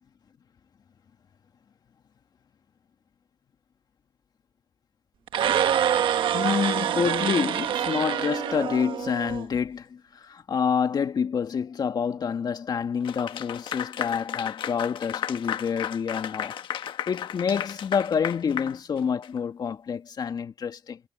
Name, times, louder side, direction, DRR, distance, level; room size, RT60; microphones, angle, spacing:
sound 1, 5.3-9.4, right 9 dB, 75° right, 1.3 m, -26 dB
voice 1, 6.3-21.0, left 6 dB, 50° left, 2.1 m, -28 dB
Clapping / Applause, 13.0-19.4, left 9 dB, 75° left, 1.4 m, -34 dB
cardioid pair, 105°, 9 cm